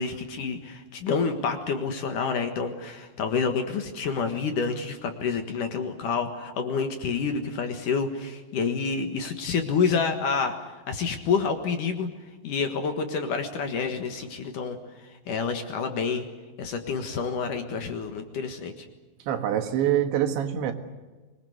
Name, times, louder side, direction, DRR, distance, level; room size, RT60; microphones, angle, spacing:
voice 1, 0.0-10.5 10.9-12.1 12.4-16.3 16.6-18.9, left 5 dB, 60° left, 6 dB, 2.6 m, -28 dB
voice 2, 19.3-20.7, right 10 dB, 85° right, 7 dB, 4.0 m, -25 dB
24.5 x 21.0 x 8.0 m, 1.3 s
omnidirectional pair, 5.1 m